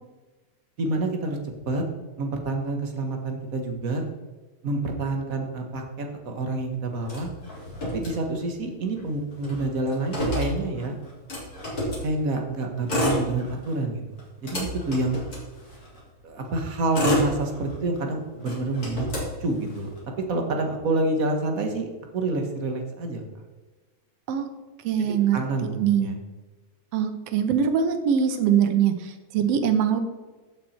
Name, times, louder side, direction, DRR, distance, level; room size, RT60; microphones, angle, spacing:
voice 1, 0.8-1.4 1.7-1.8 2.2-4.0 4.6-7.3 7.9-11.0 12.0-14.0 14.4-15.2 16.2-19.1 19.4-19.9 20.3-21.8 22.1-23.2 25.0-26.2, right 2 dB, 50° right, 3 dB, 1.0 m, -28 dB
Motor vehicle (road), 7.0-8.7 9.0-9.1 9.3-12.1 12.7-13.8 14.2-16.0 16.6-18.0 18.4-20.0, left 1 dB, 30° left, 3.3 m, -29 dB
voice 2, 24.8-25.4 25.8-26.1 26.9-30.0, right 8 dB, 70° right, 8 dB, 1.8 m, -22 dB
15.0 x 6.0 x 4.3 m, 1.3 s
omnidirectional pair, 3.4 m